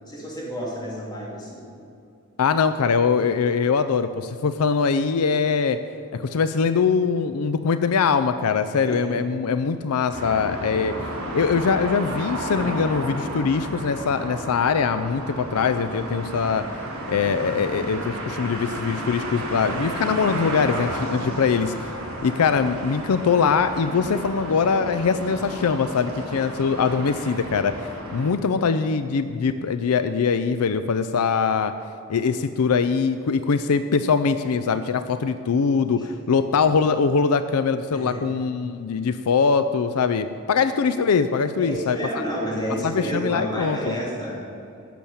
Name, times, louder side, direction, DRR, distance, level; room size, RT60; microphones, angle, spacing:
voice 1, 0.1-1.6 8.8-9.1 36.0-36.3 37.9-38.2 39.0-39.1 41.6-44.4, equal, 20° left, -4 dB, 2.9 m, -30 dB
voice 2, 2.4-5.8 6.1-11.0 11.3-16.6 17.1-21.7 22.2-31.7 32.1-42.0 42.8-43.9, left 5 dB, 80° left, 11 dB, 0.5 m, -22 dB
sound 1, 10.1-28.3, right 1 dB, 65° right, 3.3 m, -32 dB
12.0 x 7.1 x 8.5 m, 2.5 s
head